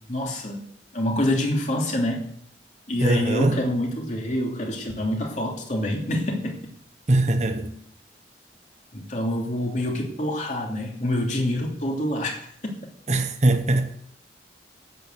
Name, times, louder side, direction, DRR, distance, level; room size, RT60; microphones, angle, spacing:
voice 1, 0.1-0.6 0.9-2.3 2.9-6.5 8.9-12.7, left 1 dB, 45° left, 2.9 m, -26 dB
voice 2, 3.0-3.6 7.1-7.8 13.1-13.9, right 2 dB, 40° right, 1.0 m, -21 dB
10.5 x 9.2 x 8.0 m
head